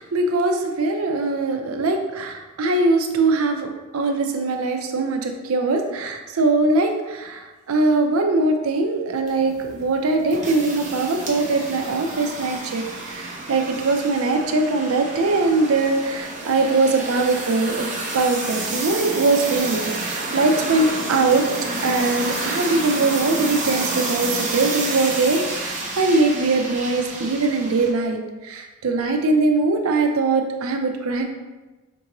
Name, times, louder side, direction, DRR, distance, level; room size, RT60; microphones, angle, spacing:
voice 1, 0.0-3.7 3.9-17.9 18.1-21.4 21.8-31.3, right 3 dB, 90° right, 4 dB, 0.5 m, -21 dB
sound 1, 9.3-27.9, right 2 dB, 35° right, 0.7 m, -30 dB
5.3 x 2.6 x 2.9 m, 1.2 s
head